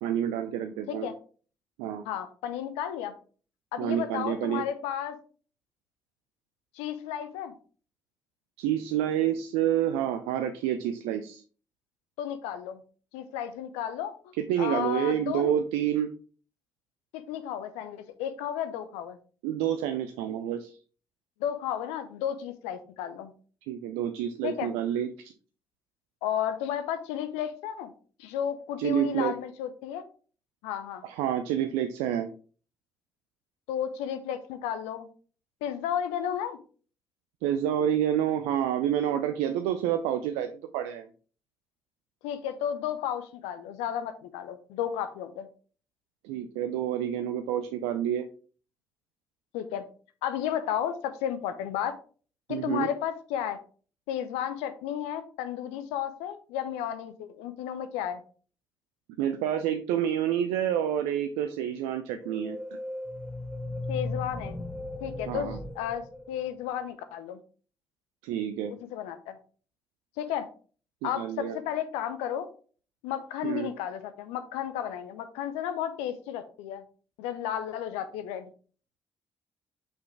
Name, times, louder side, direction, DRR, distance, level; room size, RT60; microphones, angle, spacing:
voice 1, 0.0-1.1 1.8-2.0 3.8-4.6 8.6-11.4 14.4-16.1 19.4-20.8 23.7-25.3 28.8-29.3 31.0-32.3 37.4-41.1 46.2-48.2 52.5-52.9 59.2-62.6 65.3-65.6 68.2-68.7 71.0-71.6 73.4-73.7, right 10 dB, 70° right, 8 dB, 0.4 m, -28 dB
voice 2, 2.0-3.1 3.7-5.2 6.7-7.5 12.2-12.8 13.1-14.3 14.6-15.5 17.1-19.2 21.4-23.3 24.4-24.7 26.2-27.9 28.2-30.0 30.6-31.0 33.7-35.1 35.6-36.6 42.2-45.5 49.5-49.8 50.2-52.0 52.5-53.6 54.1-58.2 63.9-64.6 65.0-67.4 68.9-69.3 70.2-70.5 71.0-72.5 73.0-76.8 77.2-78.5, left 10 dB, 70° left, 10 dB, 0.6 m, -33 dB
sound 1, 62.2-66.8, left 2 dB, 5° left, 1.5 m, -37 dB
5.8 x 5.3 x 3.4 m, 0.40 s
figure-of-eight pair, 40°, 11 cm